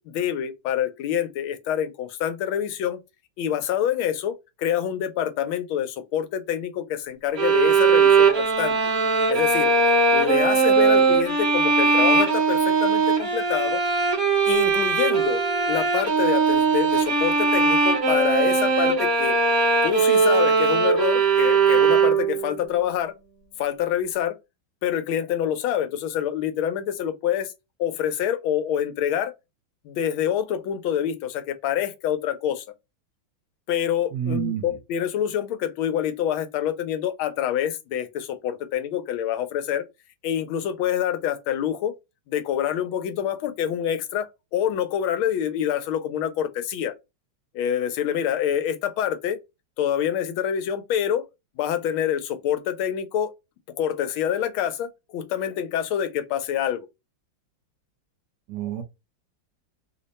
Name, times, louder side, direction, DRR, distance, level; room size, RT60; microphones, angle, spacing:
voice 1, 0.0-3.0 3.4-8.8 9.3-9.7 10.1-13.8 14.5-19.4 19.8-23.1 23.6-24.4 24.8-27.5 27.8-29.3 29.8-32.6 33.7-39.8 40.2-41.9 42.3-46.9 47.5-49.4 49.8-51.3 51.6-53.3 53.8-56.9, left 10 dB, 90° left, 1.5 m, -26 dB
sound 1, 7.4-22.5, right 4 dB, 50° right, 1.4 m, -20 dB
voice 2, 34.1-34.6 58.5-58.8, right 8 dB, 65° right, 1.3 m, -28 dB
3.4 x 2.1 x 3.9 m
omnidirectional pair, 2.2 m